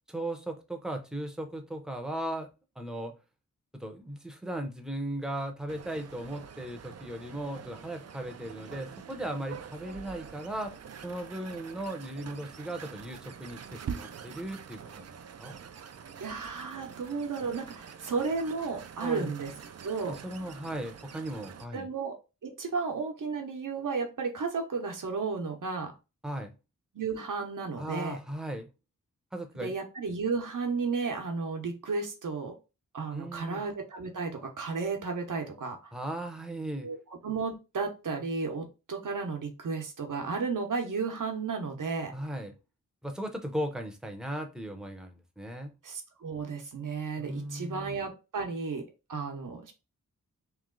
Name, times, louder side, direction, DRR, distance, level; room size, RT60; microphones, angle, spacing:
voice 1, 0.1-2.5 2.8-3.1 3.7-10.7 11.0-15.1 15.4-15.6 19.0-19.3 20.1-21.9 26.2-26.5 27.8-28.7 29.3-29.7 33.1-33.6 35.9-36.9 42.1-42.5 43.0-45.7 47.2-48.0, right 1 dB, ahead, 0.7 m, -37 dB
sound 1, 5.7-21.7, right 7 dB, 50° right, 0.4 m, -45 dB
voice 2, 16.2-19.5 19.8-20.2 21.7-25.9 26.9-28.2 29.6-32.6 32.9-35.8 36.8-42.1 45.8-49.7, right 4 dB, 75° right, 0.9 m, -33 dB
3.2 x 3.0 x 3.7 m
wide cardioid pair, 120°, 32 cm